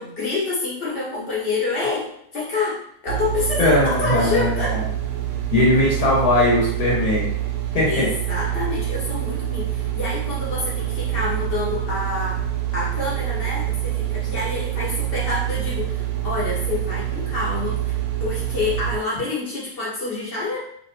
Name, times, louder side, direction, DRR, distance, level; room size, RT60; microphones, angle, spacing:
voice 1, 0.0-4.8 7.9-12.4 12.7-20.6, left 3 dB, 40° left, -6 dB, 1.1 m, -27 dB
sound 1, 3.1-19.0, right 12 dB, 85° right, 1.2 m, -26 dB
voice 2, 3.6-4.8 5.5-7.3 7.7-8.1, left 1 dB, 75° left, -5 dB, 1.5 m, -19 dB
3.2 x 2.7 x 2.8 m, 0.71 s
omnidirectional pair, 1.7 m